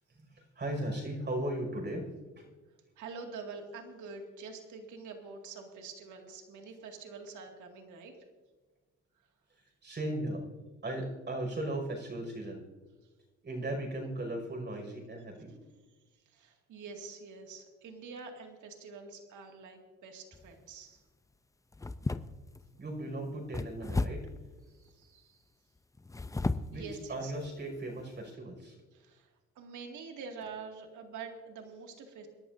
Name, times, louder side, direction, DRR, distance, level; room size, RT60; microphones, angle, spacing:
voice 1, 0.2-2.1 2.4-2.5 9.8-10.4 10.8-12.6 13.4-15.5 22.8-24.3 26.7-28.8, right 1 dB, 35° right, 1 dB, 5.6 m, -37 dB
voice 2, 3.0-8.1 16.3-21.0 24.7-25.4 26.7-27.3 28.9-29.3 29.6-32.3, right 4 dB, 80° right, 3 dB, 2.2 m, -46 dB
sound 1, 20.3-20.7 21.7-22.6 23.5-24.4 26.0-26.8 27.4-27.5 28.0-28.2, left 3 dB, 10° left, 0.5 m, -34 dB
28.0 x 11.5 x 2.7 m, 1.3 s
cardioid pair, 90°, 30 cm